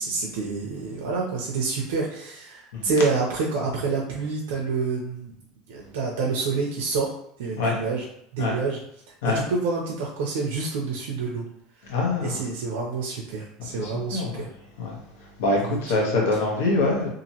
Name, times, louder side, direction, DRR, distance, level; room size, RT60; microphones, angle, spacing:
voice 1, 0.0-5.3 5.7-7.1 7.4-8.1 8.3-8.8 9.2-11.4 12.2-14.5 15.6-16.2, right 4 dB, 90° right, -2 dB, 0.6 m, -28 dB
voice 2, 11.9-12.4 13.8-14.3 14.8-14.9 15.4-17.1, left 2 dB, 90° left, -1 dB, 1.1 m, -24 dB
2.9 x 2.5 x 2.8 m, 0.72 s
supercardioid pair, 165°, 0 cm